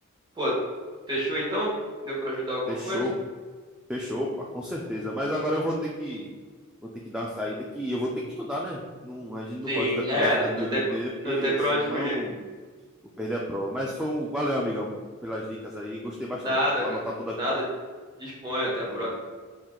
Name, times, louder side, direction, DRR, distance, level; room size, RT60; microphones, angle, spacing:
voice 1, 1.1-1.7 2.0-3.0 9.7-10.8 11.2-12.2 16.4-17.0 17.4-17.6 18.2-19.1, equal, 20° right, -5 dB, 1.2 m, -27 dB
voice 2, 2.7-3.2 3.9-6.3 6.8-12.4 13.2-14.9 15.2-17.4 18.9-19.1, equal, 5° right, -3 dB, 0.3 m, -31 dB
4.4 x 2.3 x 3.7 m, 1.5 s
head